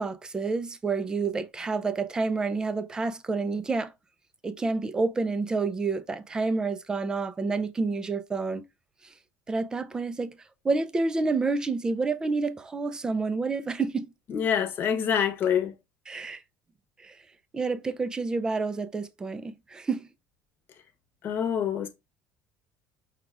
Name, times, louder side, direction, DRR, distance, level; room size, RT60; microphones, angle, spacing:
voice 1, 0.0-3.9 4.4-8.6 9.5-10.3 10.6-14.1 16.1-16.4 17.0-17.2 17.5-20.1, right 3 dB, 10° right, 0.4 m, -29 dB
voice 2, 14.3-15.7 21.2-21.9, left 8 dB, 35° left, 0.9 m, -26 dB
5.9 x 2.4 x 3.2 m
cardioid pair, 165°, 6 cm